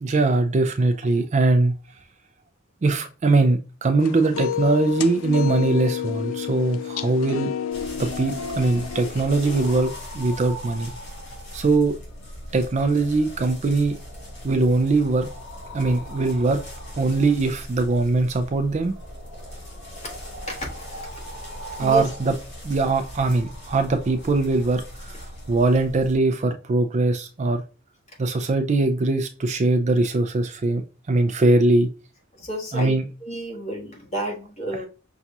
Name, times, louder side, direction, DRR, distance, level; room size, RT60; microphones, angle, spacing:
voice 1, 0.0-1.7 2.8-7.5 8.0-10.9 11.5-12.0 12.5-14.0 14.4-15.3 15.7-16.6 17.0-18.9 21.8-22.3 22.6-25.2 25.5-27.6 28.2-30.8 31.1-31.9 32.7-33.0, right 3 dB, 35° right, 7 dB, 0.4 m, -21 dB
sound 1, 4.0-9.8, left 10 dB, 80° left, 0.4 m, -30 dB
sound 2, 7.7-26.2, equal, 60° left, 2.1 m, -38 dB
voice 2, 7.8-8.1 20.4-21.2 21.6-22.1 32.3-34.9, right 1 dB, 35° left, -1 dB, 1.4 m, -32 dB
5.8 x 2.3 x 2.7 m, 0.33 s
head